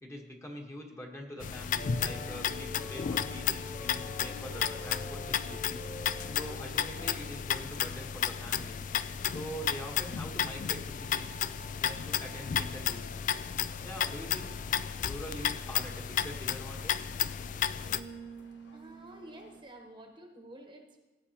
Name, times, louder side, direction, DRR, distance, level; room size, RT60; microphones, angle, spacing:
voice 1, 0.0-5.8 6.1-8.8 9.3-11.4 11.8-13.2 13.8-14.6 15.1-17.0, equal, 15° left, 0 dB, 1.3 m, -44 dB
sound 1, 1.4-18.0, left 8 dB, 50° left, 0.3 m, -33 dB
sound 2, 1.8-7.2, left 2 dB, 65° left, 1.2 m, -45 dB
sound 3, 1.9-19.6, right 1 dB, 90° left, 1.1 m, -54 dB
voice 2, 18.7-21.0, right 1 dB, 25° right, 3 dB, 1.1 m, -50 dB
16.5 x 8.3 x 2.9 m, 1.2 s
head